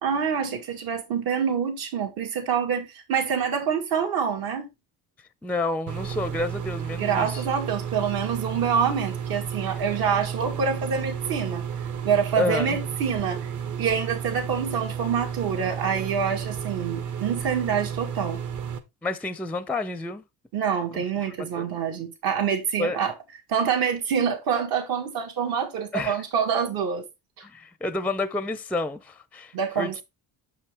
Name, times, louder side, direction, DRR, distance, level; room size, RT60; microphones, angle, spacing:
voice 1, 0.0-4.7 6.9-11.6 12.0-13.5 13.8-18.4 20.5-23.1 23.5-27.0 29.5-30.0, right 7 dB, 70° right, 2.4 m, -26 dB
voice 2, 5.4-7.4 12.4-12.8 19.0-20.2 20.9-21.0 21.6-21.7 22.8-23.0 25.9-26.2 27.4-30.0, left 2 dB, 5° left, 0.4 m, -29 dB
sound 1, 5.9-18.8, right 8 dB, 55° right, 1.2 m, -32 dB
6.6 x 5.6 x 3.4 m
cardioid pair, 125°, 37 cm